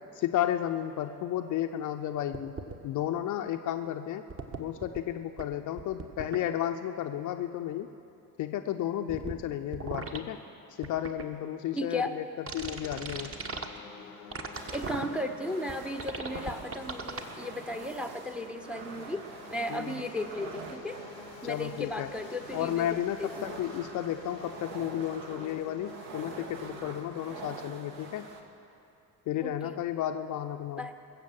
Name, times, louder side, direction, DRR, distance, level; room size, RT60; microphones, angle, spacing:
voice 1, 0.2-2.5 2.8-4.2 4.6-7.9 8.4-10.4 10.8-12.2 12.5-13.3 19.7-20.0 21.4-22.1 22.5-28.3 29.3-30.8, left 11 dB, 40° left, 7 dB, 0.6 m, -33 dB
sound 1, 2.3-2.8 4.3-5.0 5.4-5.5 5.8-6.4 9.1-9.3 9.7-10.2 10.8-11.2 12.5-13.7 14.3-15.1 15.7-15.8 16.0-17.2, right 4 dB, 25° right, 1.2 m, -37 dB
voice 2, 11.7-12.1 14.7-19.2 19.5-21.0 21.4-23.5 29.4-29.8 30.8-30.9, left 1 dB, ahead, 8 dB, 0.8 m, -35 dB
sound 2, 12.8-28.1, left 6 dB, 80° left, 0.9 m, -51 dB
sound 3, 14.5-28.4, right 4 dB, 60° right, 1.5 m, -45 dB
22.0 x 7.4 x 7.3 m, 2.7 s
figure-of-eight pair, 55°, 49 cm